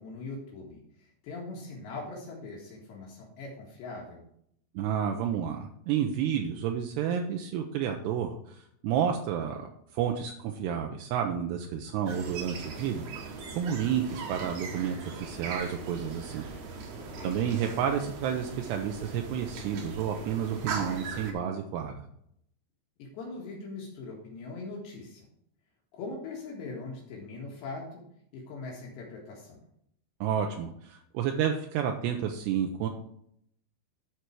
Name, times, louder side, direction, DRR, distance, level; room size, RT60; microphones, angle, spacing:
voice 1, 0.0-4.3 17.0-17.4 23.0-25.3 25.9-28.0 28.3-29.6, left 3 dB, 75° left, -1 dB, 3.9 m, -41 dB
voice 2, 4.8-9.7 9.9-16.4 17.2-22.0 30.2-32.9, right 8 dB, 80° right, 3 dB, 2.8 m, -30 dB
sound 1, 12.1-21.3, right 4 dB, 60° right, 2.3 m, -40 dB
11.5 x 5.7 x 4.7 m, 0.70 s
omnidirectional pair, 5.1 m